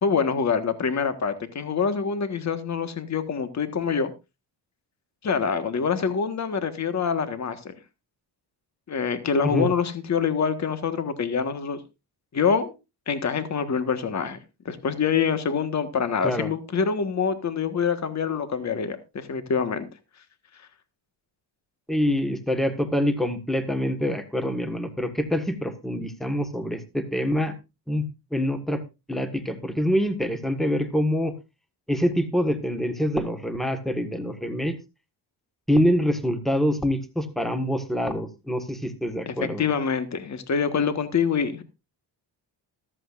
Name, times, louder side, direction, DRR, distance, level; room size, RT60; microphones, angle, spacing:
voice 1, 0.0-4.1 5.2-7.7 8.9-11.8 12.3-12.7 13.1-14.4 14.6-19.9 39.3-41.6, left 6 dB, 40° left, 9 dB, 1.5 m, -25 dB
voice 2, 21.9-27.5 27.9-28.0 28.3-28.8 29.1-31.3 31.9-34.7 35.7-39.6, equal, ahead, 7 dB, 1.5 m, -25 dB
14.0 x 13.5 x 2.5 m, 0.26 s
cardioid pair, 130°, 44 cm